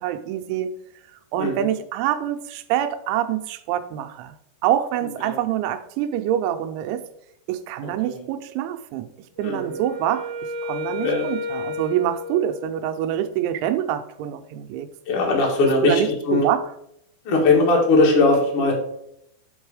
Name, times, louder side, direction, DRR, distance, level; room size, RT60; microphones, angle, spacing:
voice 1, 0.0-0.7 1.3-4.4 4.6-7.0 7.5-9.1 9.4-10.3 10.6-14.9 15.8-16.7, right 11 dB, 85° right, 8 dB, 2.9 m, -25 dB
voice 2, 1.4-1.7 5.2-5.3 7.8-8.2 9.4-9.7 11.0-11.3 15.0-16.4 17.2-18.7, left 3 dB, 80° left, -1 dB, 1.2 m, -20 dB
Wind instrument woodwind instrument, 9.4-13.3, left 2 dB, 65° right, 1.6 m, -32 dB
6.1 x 5.4 x 4.8 m, 0.75 s
omnidirectional pair, 5.4 m